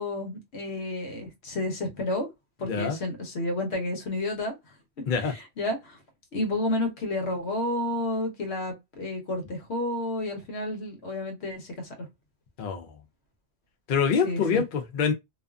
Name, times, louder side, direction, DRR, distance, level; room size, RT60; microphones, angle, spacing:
voice 1, 0.0-2.3 2.6-4.5 5.2-6.0 6.3-11.9 14.2-14.6, left 1 dB, 80° left, 1.1 m, -31 dB
voice 2, 2.6-3.0 5.1-5.3 12.6-12.9 13.9-15.1, left 6 dB, 60° left, 0.6 m, -25 dB
2.5 x 2.4 x 2.2 m
omnidirectional pair, 1.1 m